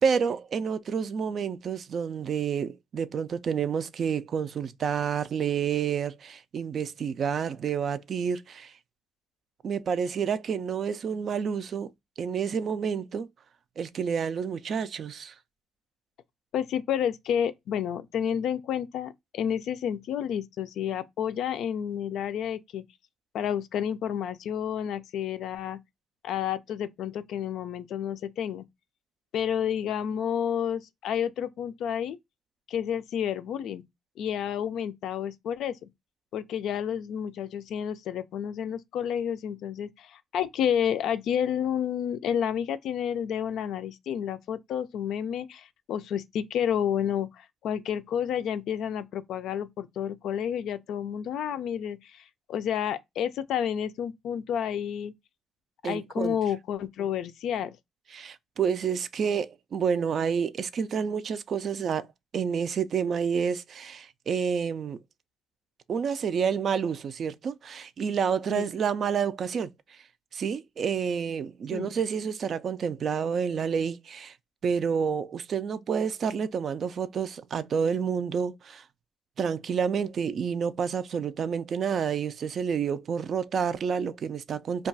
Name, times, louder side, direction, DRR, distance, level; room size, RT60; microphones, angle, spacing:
voice 1, 0.0-8.7 9.6-11.9 12.2-13.3 13.8-15.3 55.8-56.4 58.1-62.1 62.3-65.0 65.9-69.7 70.3-74.3 74.6-78.8 79.4-84.9, right 7 dB, 55° right, 0.3 m, -29 dB
voice 2, 16.5-22.8 23.3-25.8 26.2-28.6 29.3-32.2 32.7-33.8 34.2-35.9 36.3-52.2 52.5-55.1 55.8-57.8 68.5-68.7 71.7-71.9, left 9 dB, 75° left, 0.3 m, -30 dB
2.3 x 2.3 x 3.8 m
cardioid pair, 95°, 0 cm